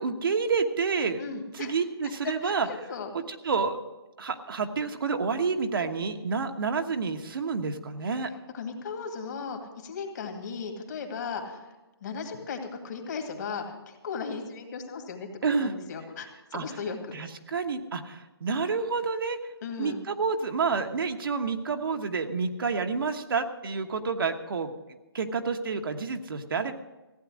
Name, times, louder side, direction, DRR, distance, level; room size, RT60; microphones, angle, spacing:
voice 1, 0.0-1.2 1.5-2.7 3.3-3.8 4.2-8.3 15.4-15.7 16.5-16.7 17.1-19.4 19.8-24.7 25.1-26.7, right 5 dB, 60° right, 6 dB, 1.2 m, -29 dB
voice 2, 1.2-1.7 2.2-3.1 8.2-11.7 12.0-15.3 15.6-17.1 19.6-20.0, left 5 dB, 45° left, 4 dB, 2.2 m, -36 dB
15.5 x 9.2 x 6.3 m, 1.1 s
hypercardioid pair, 155°, 13 cm